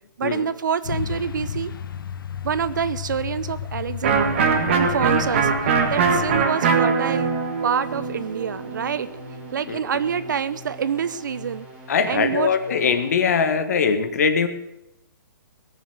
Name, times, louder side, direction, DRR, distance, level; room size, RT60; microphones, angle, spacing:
voice 1, 0.2-1.7 2.4-4.4 4.7-7.3 7.6-9.1 9.5-11.7 12.1-12.5, right 7 dB, 60° right, 15 dB, 0.7 m, -26 dB
Truck, 0.8-6.5, left 8 dB, 85° left, 1.1 m, -32 dB
Electric guitar, 4.0-9.6, right 5 dB, 35° right, 1.7 m, -22 dB
sound 1, 5.8-13.4, left 1 dB, 10° right, 2.2 m, -43 dB
voice 2, 11.9-14.5, left 6 dB, 50° left, 8 dB, 1.6 m, -21 dB
18.5 x 7.2 x 8.0 m, 0.89 s
hypercardioid pair, 175°, 11 cm